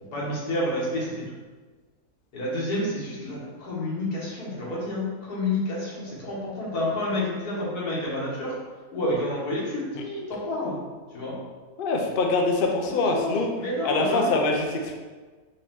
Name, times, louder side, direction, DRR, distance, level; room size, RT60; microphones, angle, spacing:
voice 1, 0.1-1.2 2.3-8.5 8.9-10.8 11.1-11.4 12.8-14.4, left 1 dB, 85° left, -6 dB, 1.9 m, -29 dB
voice 2, 11.8-13.5 13.8-15.0, left 3 dB, 60° left, 1 dB, 0.5 m, -24 dB
4.9 x 2.9 x 3.6 m, 1.4 s
omnidirectional pair, 1.6 m